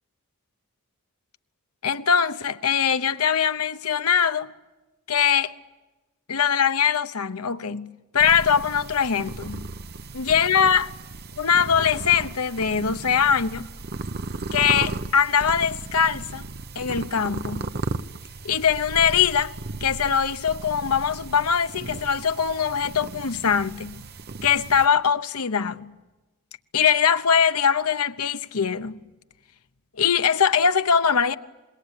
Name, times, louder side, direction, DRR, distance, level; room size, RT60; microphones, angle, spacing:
voice 1, 1.8-4.5 5.1-5.5 6.3-9.6 10.1-10.9 11.4-13.7 14.5-16.5 16.7-17.7 18.4-19.5 19.8-24.0 24.4-25.9 26.7-29.0 30.0-31.3, left 7 dB, 75° left, 0.9 m, -22 dB
sound 1, 8.2-24.9, right 3 dB, 45° right, 0.8 m, -35 dB
26.5 x 21.5 x 9.7 m
head